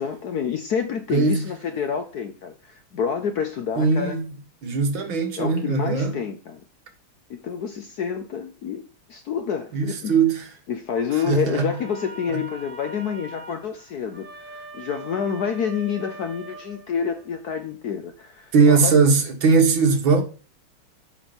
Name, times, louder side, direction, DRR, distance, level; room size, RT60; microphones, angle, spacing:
voice 1, 0.0-4.1 5.4-6.6 7.3-8.8 9.1-10.1 10.7-19.0, left 7 dB, 60° left, 1.1 m, -28 dB
voice 2, 1.1-1.5 3.8-4.3 4.6-6.2 9.7-10.5 11.1-11.7 12.3-12.4 18.5-20.2, right 4 dB, 65° right, 2.3 m, -20 dB
sound 1, 11.1-17.4, right 2 dB, 45° right, 1.4 m, -42 dB
8.4 x 5.3 x 5.3 m
omnidirectional pair, 2.3 m